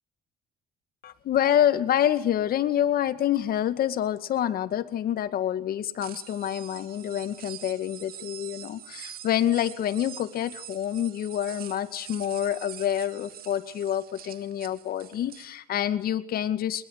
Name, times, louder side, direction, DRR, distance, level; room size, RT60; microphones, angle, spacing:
voice 1, 1.0-16.8, left 10 dB, 60° left, 12 dB, 2.1 m, -27 dB
sound 1, 6.0-15.5, right 11 dB, 65° right, 2.3 m, -45 dB
24.5 x 21.5 x 8.3 m, 0.72 s
cardioid pair, 110°, 17 cm